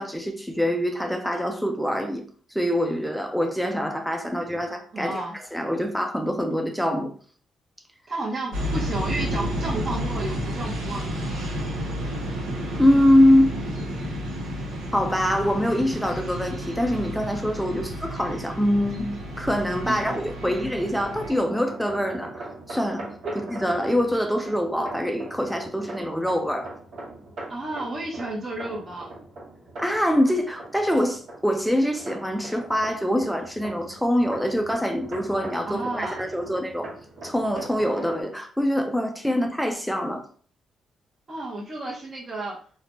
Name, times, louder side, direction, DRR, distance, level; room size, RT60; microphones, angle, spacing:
voice 1, 0.0-2.2 2.5-5.2 5.5-7.1 12.8-13.6 14.9-26.7 29.8-36.9 37.2-40.2, equal, ahead, 0.4 m, -24 dB
voice 2, 4.9-5.4 8.1-11.0 17.7-17.8 19.9-20.5 23.2-23.3 27.5-29.1 35.6-36.2 41.3-42.6, right 2 dB, 35° right, 0.8 m, -32 dB
sound 1, 8.5-21.4, equal, 75° right, 0.8 m, -31 dB
sound 2, 19.7-38.2, right 2 dB, 60° right, 1.1 m, -41 dB
2.8 x 2.1 x 2.9 m
cardioid pair, 90°, 0 cm